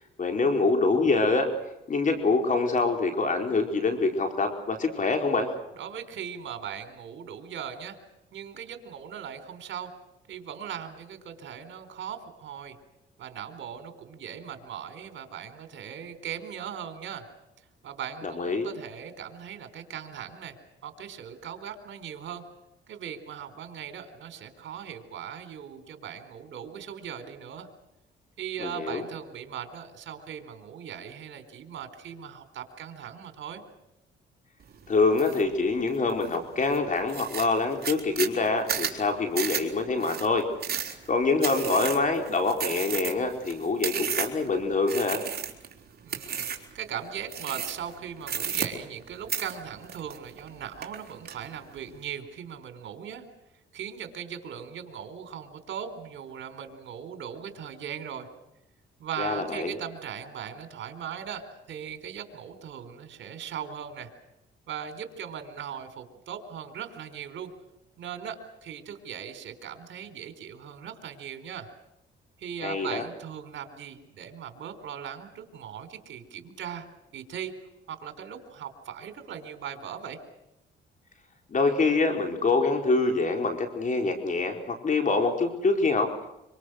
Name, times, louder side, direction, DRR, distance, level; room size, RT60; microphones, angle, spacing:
voice 1, 0.2-1.5 1.9-5.5 18.2-18.7 28.6-29.0 34.9-40.4 40.9-45.2 59.2-59.8 72.6-73.0 81.5-86.3, left 3 dB, 40° left, 4 dB, 4.5 m, -25 dB
voice 2, 5.8-8.0 8.3-9.9 10.3-12.8 13.2-17.3 17.8-20.6 20.8-22.4 22.9-27.7 28.4-33.6 46.0-53.2 53.7-58.3 59.0-64.1 64.7-67.5 68.0-71.7 72.4-76.9 77.1-77.5 77.9-80.2, right 8 dB, 70° right, 9 dB, 4.3 m, -39 dB
sound 1, 35.2-35.4 35.9-36.4 36.7-36.8 37.1-44.5 44.9-45.7 46.1-46.7 47.3-47.9 48.2-49.0 49.3-50.5 50.8-51.4, right 8 dB, 50° right, 4.1 m, -32 dB
26.0 x 26.0 x 6.5 m, 0.87 s
cardioid pair, 90°, 20 cm